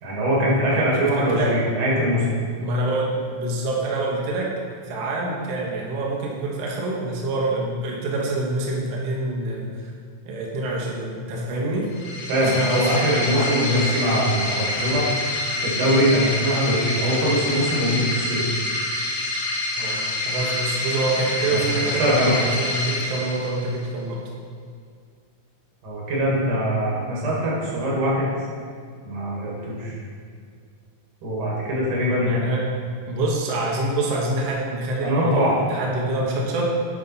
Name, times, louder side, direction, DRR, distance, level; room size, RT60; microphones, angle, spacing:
voice 1, 0.0-2.3 12.3-15.1 15.6-18.6 21.5-21.6 22.0-22.3 25.8-28.3 29.1-29.9 31.2-32.3 35.0-35.5, equal, 85° right, -5 dB, 3.6 m, -22 dB
voice 2, 1.0-1.6 2.6-4.6 4.8-9.9 10.3-11.9 12.4-14.0 19.8-24.2 32.2-32.7 33.1-36.8, right 2 dB, 60° right, -3 dB, 1.9 m, -26 dB
sound 1, 11.9-23.8, left 2 dB, 60° left, 1.6 m, -27 dB
10.0 x 4.1 x 5.5 m, 2.2 s
omnidirectional pair, 3.5 m